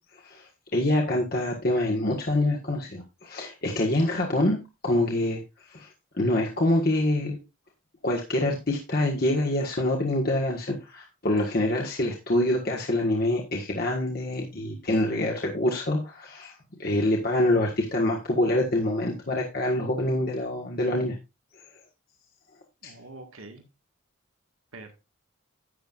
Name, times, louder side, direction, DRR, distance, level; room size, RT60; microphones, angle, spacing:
voice 1, 0.1-4.6 4.8-5.4 5.7-5.9 6.2-7.4 8.0-21.2 22.8-22.9, left 1 dB, 45° left, -1 dB, 1.6 m, -26 dB
voice 2, 0.8-1.2 22.8-23.6 24.7-24.9, right 2 dB, 80° right, 4 dB, 1.8 m, -45 dB
11.5 x 9.1 x 2.5 m, 0.25 s
head